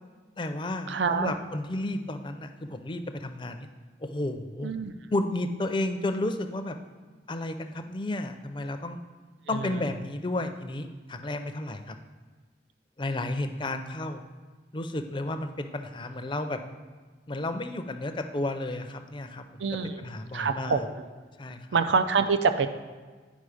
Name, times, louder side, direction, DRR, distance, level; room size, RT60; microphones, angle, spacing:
voice 1, 0.4-3.7 4.0-4.7 5.1-6.8 7.3-9.0 9.5-11.9 13.0-14.3 14.7-16.6 17.3-19.4 20.0-20.8 21.4-21.6, left 2 dB, 25° left, 7 dB, 0.5 m, -32 dB
voice 2, 0.9-1.3 4.6-4.9 9.5-9.9 19.6-20.1 20.3-21.0 21.7-22.7, right 5 dB, 75° right, 9 dB, 0.5 m, -26 dB
9.3 x 5.2 x 4.9 m, 1.4 s
head